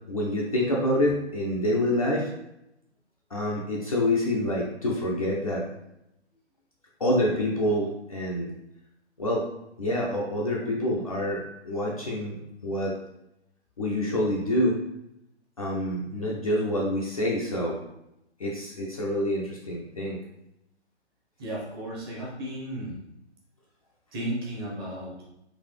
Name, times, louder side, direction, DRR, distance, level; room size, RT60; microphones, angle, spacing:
voice 1, 0.1-2.3 3.3-5.7 7.0-8.5 9.2-9.5 9.8-12.4 12.6-13.0 13.8-14.8 15.6-17.8 18.4-20.2, left 1 dB, 35° left, -4 dB, 0.4 m, -27 dB
voice 2, 21.4-23.0 24.1-25.1, right 1 dB, 20° right, -4 dB, 0.7 m, -34 dB
3.9 x 2.5 x 3.3 m, 0.84 s
figure-of-eight pair, 135°, 34 cm